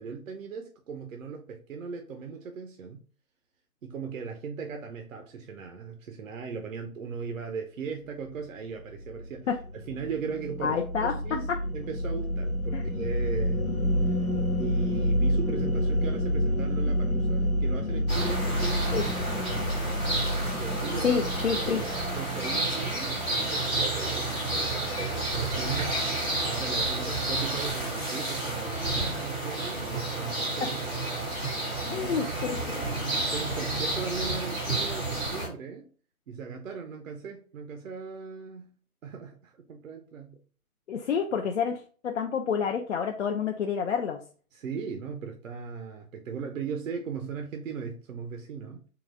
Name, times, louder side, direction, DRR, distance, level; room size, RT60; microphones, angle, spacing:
voice 1, 0.0-3.0 3.8-9.5 9.9-13.6 14.0-14.2 14.6-19.1 19.4-19.5 20.5-26.1 26.4-31.0 31.8-35.9 36.3-38.7 39.0-40.4 44.5-48.8, right 5 dB, 65° right, 4 dB, 0.7 m, -38 dB
sound 1, 9.0-23.5, equal, 85° left, 1.2 m, -29 dB
voice 2, 10.6-11.6 12.7-12.8 18.9-19.0 21.0-21.8 30.6-30.7 31.9-32.8 40.9-44.2, left 6 dB, 55° left, 3 dB, 0.5 m, -29 dB
sound 2, 18.1-35.5, right 2 dB, 5° left, 0.5 m, -30 dB
3.9 x 2.3 x 3.9 m, 0.41 s
figure-of-eight pair, 135°, 43 cm